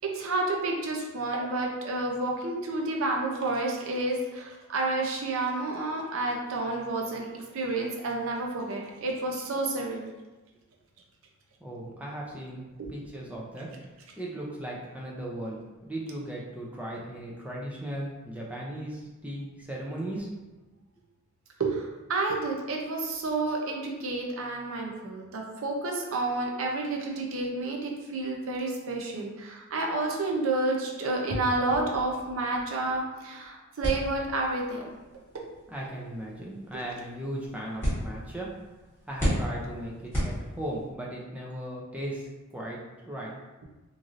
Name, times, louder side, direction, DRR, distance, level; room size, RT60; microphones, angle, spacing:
voice 1, 0.0-7.3 7.5-10.1 12.8-12.9 21.6-35.0 35.3-35.4, right 2 dB, 65° right, 0 dB, 0.5 m, -30 dB
voice 2, 11.6-13.7 14.2-20.3 35.7-38.5 39.1-42.8 43.0-43.4, right 1 dB, 5° right, -4 dB, 0.4 m, -37 dB
sound 1, 33.8-40.9, equal, 10° left, 1.3 m, -34 dB
3.0 x 2.6 x 2.5 m, 1.2 s
head